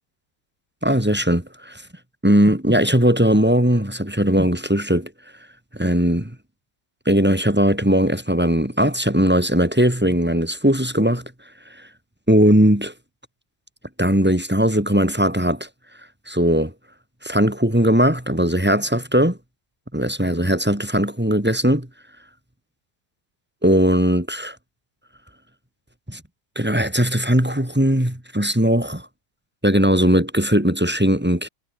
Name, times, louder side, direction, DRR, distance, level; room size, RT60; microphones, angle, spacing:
voice 1, 0.8-1.8 2.2-5.1 5.7-6.4 7.1-11.3 11.8-11.9 12.3-12.9 14.0-15.7 16.3-16.7 17.2-19.4 19.9-21.9 23.6-24.6 26.1-26.2 26.6-29.1 29.6-31.5, equal, 5° right, 2.3 m, -19 dB
omnidirectional pair, 1.9 m